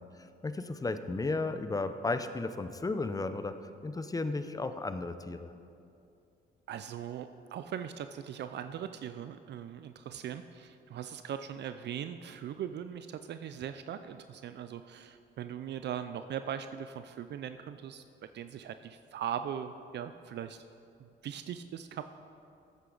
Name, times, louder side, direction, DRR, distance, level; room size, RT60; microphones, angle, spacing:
voice 1, 0.4-5.5, left 3 dB, 20° left, 10 dB, 0.6 m, -34 dB
voice 2, 6.7-18.0 18.3-20.6 21.0-22.0, right 9 dB, 60° right, 10 dB, 0.4 m, -40 dB
14.0 x 8.1 x 3.9 m, 2.5 s
cardioid pair, 90°, 20 cm